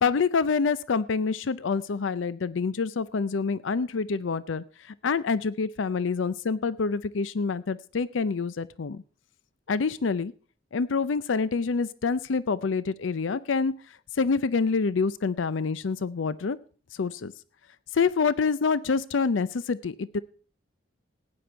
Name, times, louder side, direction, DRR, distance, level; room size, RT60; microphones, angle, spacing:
voice 1, 0.0-9.0 9.7-10.3 10.7-13.7 14.2-16.6 17.0-17.3 17.9-20.2, left 5 dB, 80° left, 17 dB, 0.5 m, -27 dB
16.0 x 9.7 x 4.5 m, 0.40 s
head